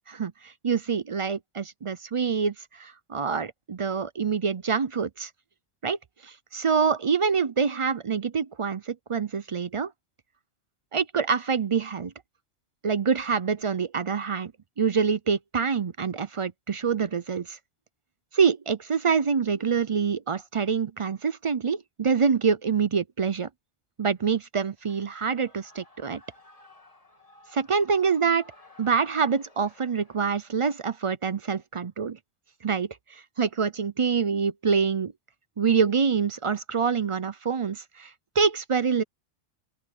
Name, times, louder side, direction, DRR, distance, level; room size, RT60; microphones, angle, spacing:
voice 1, 0.1-5.3 5.8-9.9 10.9-12.1 12.8-14.5 14.8-17.6 18.3-23.5 24.0-26.2 27.5-28.4 28.8-32.2 32.6-35.1 35.6-39.0, right 6 dB, 45° right, 0.4 m, -26 dB
Shout / Cheering, 24.8-30.2, left 2 dB, 30° left, 2.3 m, -55 dB
open air
omnidirectional pair, 1.2 m